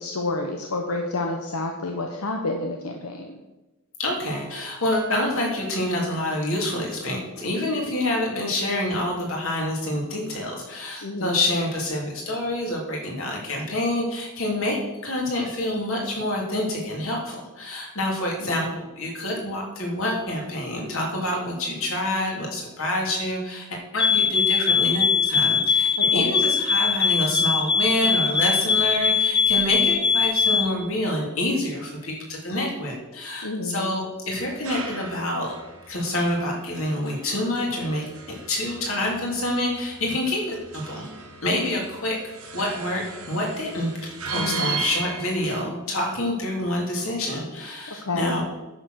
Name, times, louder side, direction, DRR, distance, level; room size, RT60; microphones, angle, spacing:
voice 1, 0.0-3.4 11.0-11.4 18.4-18.7 26.0-26.4 33.4-33.9 44.3-44.7 48.1-48.3, left 2 dB, 90° left, 2 dB, 1.1 m, -29 dB
voice 2, 4.0-35.5 35.9-38.0 38.5-41.1 41.4-42.2 42.5-43.0 43.3-48.4, left 1 dB, 65° left, -1 dB, 3.2 m, -27 dB
sound 1, 24.0-30.7, left 5 dB, 20° left, 0.7 m, -21 dB
sound 2, 34.3-45.6, right 5 dB, 85° right, 2.0 m, -37 dB
9.8 x 6.9 x 6.4 m, 1.0 s
head